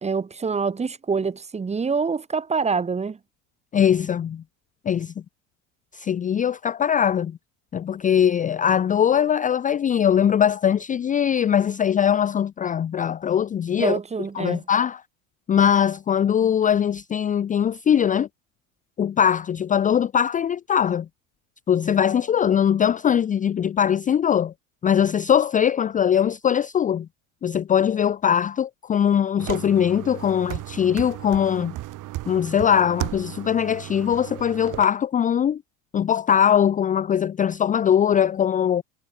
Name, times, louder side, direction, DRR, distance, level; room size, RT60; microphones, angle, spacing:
voice 1, 0.0-3.2 13.8-14.6, right 5 dB, 15° right, 1.8 m, -25 dB
voice 2, 3.7-4.4 4.9-5.1 5.9-7.4 7.7-14.0 14.4-15.0 15.5-18.3 19.0-21.1 21.7-24.5 24.8-27.1 27.4-31.7 32.3-35.6 35.9-38.8, left 9 dB, 20° left, 0.6 m, -21 dB
sound 1, 29.4-34.8, right 16 dB, 50° right, 4.8 m, -35 dB
supercardioid pair, 120°, 39 cm